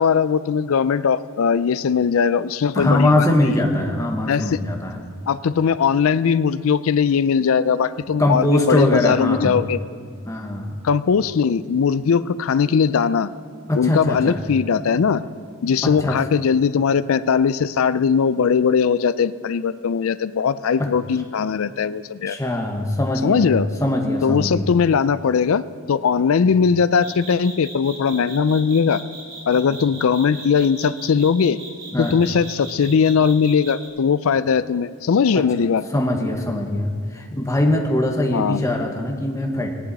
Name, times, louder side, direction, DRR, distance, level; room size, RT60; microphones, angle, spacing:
voice 1, 0.0-3.3 4.3-4.6 5.3-9.8 10.8-13.3 13.8-15.2 15.6-22.4 23.2-23.7 24.2-25.6 25.9-29.0 29.5-31.6 32.0-35.8 38.3-38.6, left 6 dB, 70° left, 16 dB, 0.4 m, -19 dB
voice 2, 2.7-5.0 8.2-9.6 10.3-10.8 13.7-14.4 15.8-16.2 20.8-20.9 22.3-24.6 26.4-26.6 31.9-32.1 35.3-35.4 35.9-39.7, left 1 dB, 15° left, 2 dB, 1.2 m, -22 dB
sound 1, 27.0-33.9, right 3 dB, 65° right, 3.0 m, -38 dB
18.0 x 11.0 x 4.1 m, 2.1 s
head